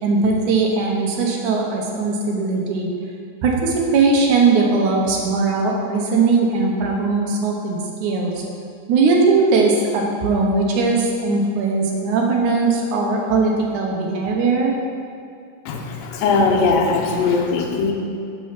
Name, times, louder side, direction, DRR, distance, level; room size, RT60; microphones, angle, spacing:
voice 1, 0.0-2.9 3.4-8.4 8.9-14.8, right 4 dB, 70° right, 0 dB, 2.2 m, -19 dB
voice 2, 15.7-17.9, left 4 dB, 90° left, 1 dB, 2.6 m, -19 dB
6.9 x 6.2 x 5.7 m, 2.4 s
omnidirectional pair, 3.8 m